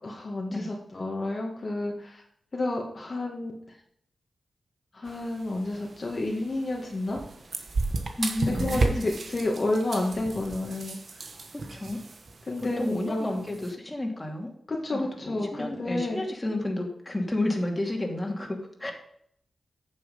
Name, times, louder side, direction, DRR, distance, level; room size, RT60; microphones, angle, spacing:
voice 1, 0.0-2.2 2.5-3.5 4.9-7.2 8.6-11.0 12.5-13.4 14.7-16.2, left 2 dB, 45° left, -1 dB, 2.0 m, -30 dB
sound 1, 5.1-13.7, right 3 dB, 60° right, 1.3 m, -34 dB
voice 2, 8.2-9.1 11.5-12.0 12.6-14.5 14.9-18.9, left 1 dB, 20° left, 1 dB, 2.7 m, -31 dB
9.4 x 7.0 x 5.3 m, 0.68 s
cardioid pair, 70°, 0 cm